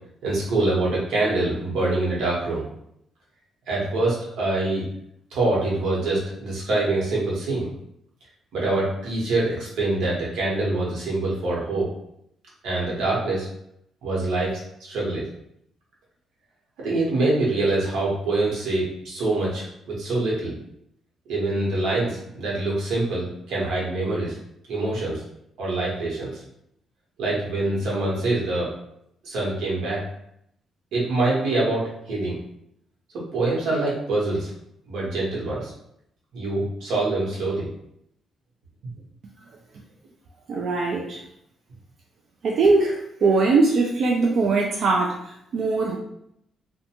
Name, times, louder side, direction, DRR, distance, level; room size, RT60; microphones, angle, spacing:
voice 1, 0.2-2.6 3.7-4.8 5.3-7.7 8.5-11.9 12.6-13.5 14.0-15.3 16.8-20.5 21.3-24.4 24.7-25.2 25.6-26.4 27.2-28.7 29.2-30.0 30.9-32.4 33.1-34.5 34.9-35.7 36.3-37.7, right 2 dB, 85° right, -4 dB, 1.0 m, -25 dB
voice 2, 40.5-41.2 42.4-46.0, right 3 dB, 50° right, -1 dB, 0.3 m, -21 dB
2.5 x 2.2 x 2.8 m, 0.75 s
cardioid pair, 165°, 0 cm